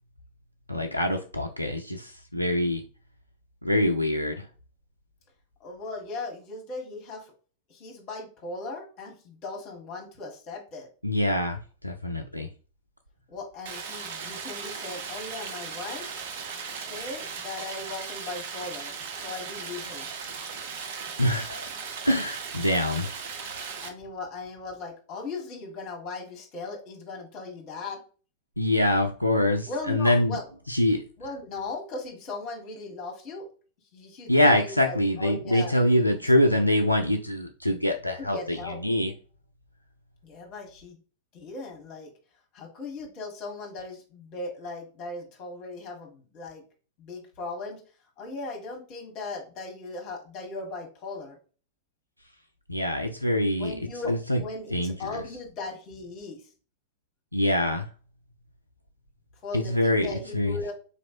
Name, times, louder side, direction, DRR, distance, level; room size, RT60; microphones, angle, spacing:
voice 1, 0.7-2.8 3.6-4.5 11.0-12.5 21.2-21.7 22.1-23.2 28.6-30.4 30.7-31.0 34.3-39.1 52.7-53.7 54.1-54.4 54.7-54.9 57.3-57.9 59.5-60.6, left 1 dB, 90° left, 4 dB, 0.4 m, -24 dB
voice 2, 5.6-7.3 7.7-10.9 13.3-16.1 16.7-20.1 23.8-28.0 29.7-30.4 31.2-33.5 33.9-35.8 38.2-38.8 40.2-41.0 41.3-42.1 42.5-46.6 47.0-47.8 48.2-51.4 53.6-56.5 59.4-60.7, left 3 dB, 35° left, 1 dB, 1.6 m, -38 dB
Stream, 13.7-23.9, right 6 dB, 55° right, 0.6 m, -37 dB
4.1 x 3.1 x 2.7 m, 0.37 s
figure-of-eight pair, 90°, 0 cm